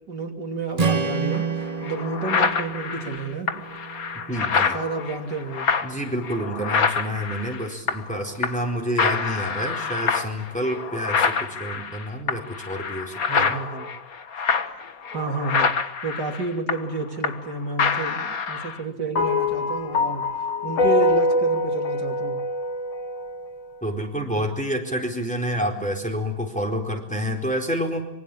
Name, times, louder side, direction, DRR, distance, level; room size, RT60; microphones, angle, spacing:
voice 1, 0.1-1.5 1.8-3.7 4.7-5.7 13.3-13.9 15.1-15.8 16.0-20.3 20.6-22.4, right 3 dB, 65° right, 2 dB, 3.6 m, -30 dB
Strum, 0.8-5.0, right 5 dB, 25° right, 1.1 m, -29 dB
Slow Beast (Highpass), 1.3-1.4 1.8-8.2 8.4-8.7 9.0-17.5 17.8-18.8, left 5 dB, 50° left, 1.9 m, -26 dB
voice 2, 4.3-4.8 5.8-13.6 23.8-28.0, equal, 5° left, 2 dB, 4.4 m, -28 dB
sound 1, 19.2-23.6, left 2 dB, 90° left, 2.4 m, -24 dB
26.0 x 23.5 x 8.7 m, 0.88 s
omnidirectional pair, 2.0 m